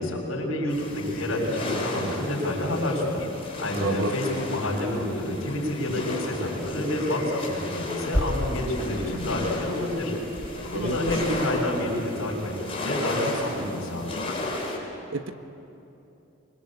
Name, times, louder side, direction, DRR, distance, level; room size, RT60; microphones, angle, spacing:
voice 1, 0.0-3.3 3.6-10.1 10.6-14.2, left 1 dB, 70° left, -1 dB, 6.5 m, -28 dB
sound 1, 0.7-14.8, left 2 dB, 30° left, 4.7 m, -34 dB
voice 2, 3.8-4.1 5.9-6.0 10.7-11.0 15.1-15.3, right 2 dB, 65° right, 8 dB, 1.3 m, -29 dB
sound 2, 5.0-5.3 6.1-6.3 6.6-6.8 7.5-11.2, equal, 5° left, 3.7 m, -34 dB
25.5 x 23.0 x 8.5 m, 2.8 s
head